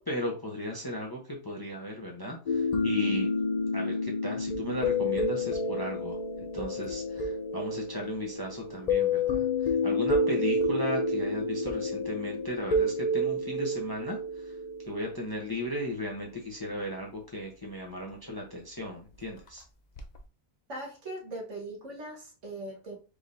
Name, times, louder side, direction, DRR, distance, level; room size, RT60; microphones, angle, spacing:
voice 1, 0.0-3.3 3.7-6.2 6.5-9.5 9.8-14.2 14.9-19.6, equal, 20° left, 0.8 m, -36 dB
sound 1, 2.5-15.6 20.0-20.2, left 2 dB, 50° left, 0.5 m, -29 dB
voice 2, 10.3-10.7 20.7-23.0, right 1 dB, 65° right, 1.6 m, -40 dB
4.7 x 3.6 x 2.6 m
omnidirectional pair, 1.4 m